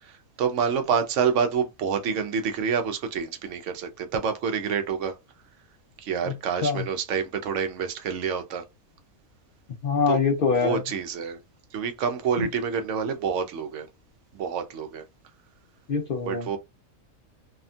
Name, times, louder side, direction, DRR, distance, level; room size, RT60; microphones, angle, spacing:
voice 1, 0.0-5.1 6.0-8.6 10.1-10.2 10.5-11.4 11.7-13.9 14.3-15.0 16.2-16.6, right 6 dB, 70° right, 0.9 m, -27 dB
voice 2, 9.8-10.8 12.4-12.5 15.9-16.5, left 5 dB, 50° left, 0.7 m, -24 dB
2.8 x 2.2 x 2.5 m
omnidirectional pair, 1.4 m